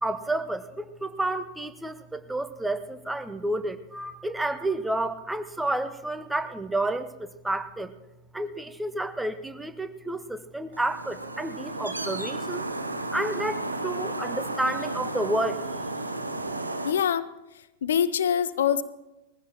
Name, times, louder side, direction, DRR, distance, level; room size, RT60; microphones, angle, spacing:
voice 1, 0.0-7.9 8.3-12.7 13.1-15.7, right 1 dB, 5° right, 10 dB, 0.9 m, -30 dB
sound 1, 10.7-16.9, right 2 dB, 80° right, 0.9 m, -33 dB
voice 2, 16.8-17.3 17.8-18.8, left 8 dB, 65° left, 16 dB, 0.6 m, -24 dB
21.0 x 15.5 x 3.0 m, 0.98 s
figure-of-eight pair, 90°, 0 cm